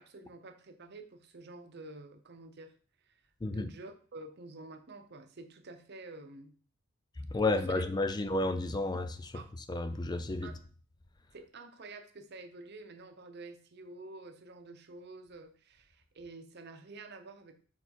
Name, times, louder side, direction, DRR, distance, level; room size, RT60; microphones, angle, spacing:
voice 1, 0.0-2.7 3.1-3.2 3.5-6.5 7.4-7.8 9.3-9.5 10.4-10.6 11.3-17.5, right 2 dB, 55° right, 0.8 m, -49 dB
voice 2, 7.3-9.4 9.7-10.5, left 2 dB, 20° left, 0.4 m, -31 dB
5.7 x 4.6 x 4.3 m
head